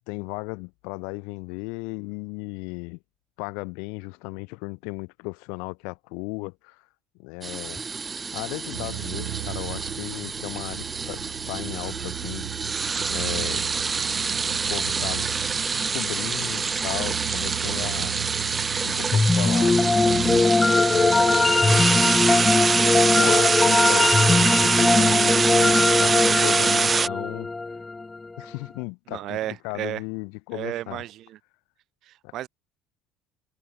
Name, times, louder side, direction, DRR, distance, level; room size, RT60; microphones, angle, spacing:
voice 1, 0.1-3.0 3.4-6.8 7.2-7.8 8.3-12.5 13.1-13.7 14.5-15.3 15.9-18.1 18.8-19.8 20.9-21.6 22.9-27.5 28.4-31.0 32.2-32.3, left 35 dB, 75° left, 3.1 m, -35 dB
sound 1, 7.4-27.1, right 5 dB, 30° right, 0.4 m, -25 dB
sound 2, 8.7-20.4, right 34 dB, 75° right, 2.6 m, -36 dB
sound 3, 19.1-28.3, left 3 dB, 20° left, 0.8 m, -20 dB
voice 2, 29.1-30.0 30.5-31.4 32.1-32.5, right 13 dB, 60° right, 1.2 m, -33 dB
hypercardioid pair, 70°, 0 cm